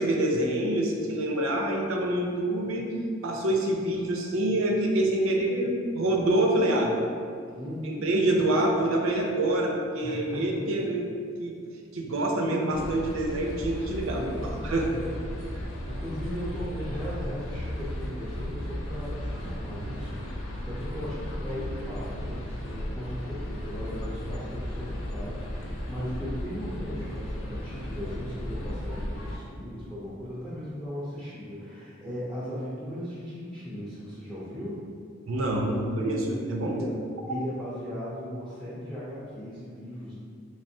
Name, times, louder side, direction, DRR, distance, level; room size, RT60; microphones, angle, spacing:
voice 1, 0.0-2.9 3.2-6.9 7.8-11.1 11.4-11.6 11.9-14.3 14.6-14.9 35.3-36.8, right 1 dB, 80° right, 1 dB, 0.5 m, -26 dB
voice 2, 7.5-8.1 10.0-10.6 14.1-15.2 15.5-34.8 36.7-40.1, equal, 5° left, -9 dB, 0.4 m, -37 dB
sound 1, 12.7-29.4, equal, 85° left, 0.6 m, -35 dB
3.4 x 3.3 x 2.6 m, 2.2 s
head